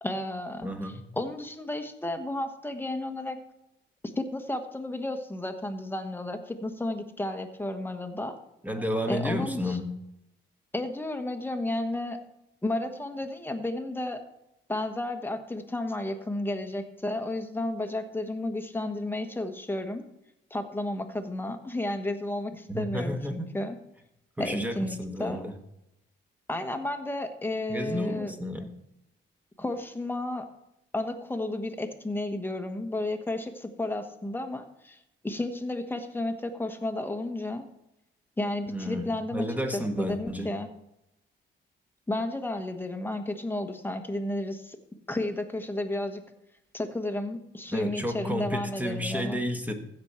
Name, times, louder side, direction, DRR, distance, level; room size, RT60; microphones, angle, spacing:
voice 1, 0.0-3.4 4.2-8.4 9.1-9.8 10.7-12.2 12.6-14.2 14.7-20.0 20.5-23.8 24.4-25.5 26.5-28.3 29.6-30.5 30.9-37.6 38.4-39.4 39.7-40.7 42.1-44.8 45.1-46.2 46.7-49.4, left 1 dB, 10° left, 6 dB, 1.2 m, -32 dB
voice 2, 0.6-1.0 8.6-9.9 22.7-23.5 24.4-25.5 27.7-28.7 38.7-40.5 47.7-49.7, equal, 10° right, 5 dB, 1.6 m, -31 dB
15.5 x 5.3 x 4.4 m, 0.85 s
cardioid pair, 90°, 20 cm